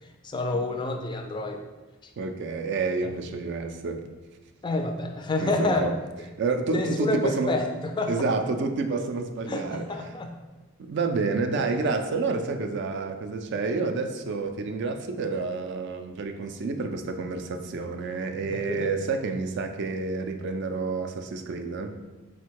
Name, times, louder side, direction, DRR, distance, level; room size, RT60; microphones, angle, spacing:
voice 1, 0.2-1.6 2.0-2.1 3.0-3.1 4.6-5.9 6.7-8.1 9.5-10.3 18.4-18.9, left 2 dB, 20° left, 4 dB, 0.3 m, -28 dB
voice 2, 2.2-4.0 5.4-5.9 6.4-7.5 8.1-9.8 10.8-21.9, right 4 dB, 55° right, 6 dB, 0.4 m, -29 dB
4.3 x 2.2 x 4.5 m, 1.2 s
head